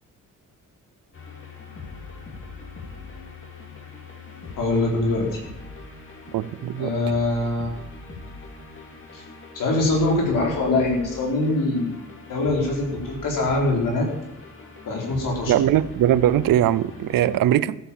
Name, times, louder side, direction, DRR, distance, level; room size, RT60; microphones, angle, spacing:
sound 1, 1.1-17.4, left 3 dB, 40° left, 2.9 m, -41 dB
voice 1, 4.6-5.4 6.8-7.7 9.1-9.2 9.5-12.0 12.3-14.1 14.9-15.5, left 2 dB, 75° left, -1 dB, 4.5 m, -23 dB
voice 2, 6.3-6.9 15.5-17.8, right 12 dB, 90° right, 18 dB, 0.7 m, -20 dB
13.5 x 8.5 x 7.2 m, 0.87 s
wide cardioid pair, 145°, 33 cm